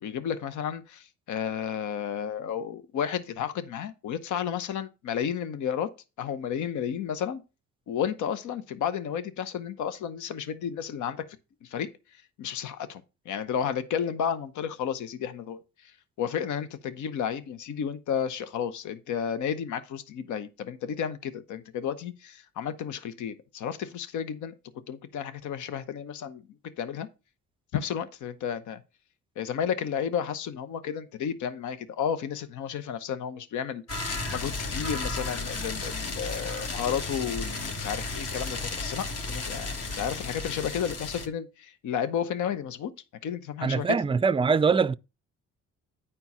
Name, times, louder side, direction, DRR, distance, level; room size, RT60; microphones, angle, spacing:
voice 1, 0.0-5.9 6.2-7.4 7.9-11.3 11.6-13.0 13.3-24.5 24.9-26.4 26.8-27.1 27.7-28.8 29.4-33.8 34.3-42.9 43.2-44.0, left 8 dB, 75° left, 0.9 m, -32 dB
sound 1, 33.9-41.3, left 3 dB, 55° left, 1.8 m, -33 dB
voice 2, 43.6-44.9, right 5 dB, 20° right, 0.4 m, -23 dB
9.8 x 4.5 x 5.4 m
cardioid pair, 90°, 30 cm